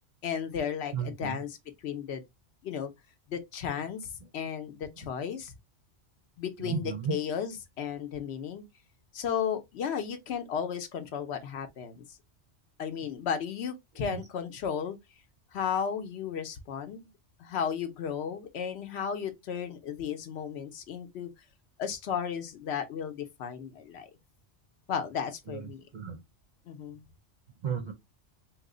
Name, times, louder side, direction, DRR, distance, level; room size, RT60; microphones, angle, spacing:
voice 1, 0.2-2.2 2.6-2.9 3.3-5.5 6.4-8.6 9.1-12.0 12.8-15.0 15.5-17.1 17.4-21.3 21.8-24.1 24.9-25.9 26.7-27.0, left 7 dB, 70° left, 0.8 m, -34 dB
voice 2, 0.9-1.4 6.6-7.2 13.0-13.1 14.0-14.2 25.5-26.2 27.6-27.9, right 7 dB, 50° right, 0.6 m, -34 dB
2.9 x 2.0 x 3.6 m
omnidirectional pair, 1.2 m